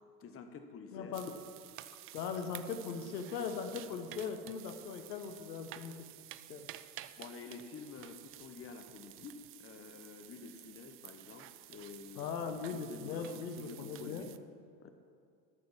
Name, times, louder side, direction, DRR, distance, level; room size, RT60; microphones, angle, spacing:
voice 1, 0.2-1.2 7.2-12.2 12.7-14.4 14.8-14.9, left 5 dB, 25° left, 7 dB, 1.2 m, -49 dB
voice 2, 0.9-1.3 2.1-5.9 6.5-6.7 12.2-14.3, left 6 dB, 80° left, 7 dB, 1.2 m, -39 dB
sound 1, 1.1-14.4, right 15 dB, 30° right, 0.3 m, -52 dB
12.5 x 6.5 x 7.3 m, 2.4 s
hypercardioid pair, 85°, 49 cm